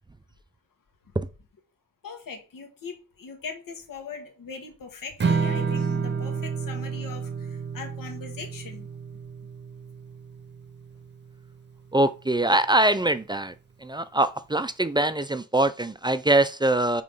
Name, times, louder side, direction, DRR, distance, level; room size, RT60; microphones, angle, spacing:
voice 1, 2.0-8.9, left 5 dB, 85° left, 1.6 m, -40 dB
Strum, 5.2-11.5, right 5 dB, 35° right, 0.8 m, -30 dB
voice 2, 11.9-13.5 13.8-17.0, right 1 dB, 15° right, 0.4 m, -23 dB
5.3 x 3.8 x 5.4 m
wide cardioid pair, 150°, 33 cm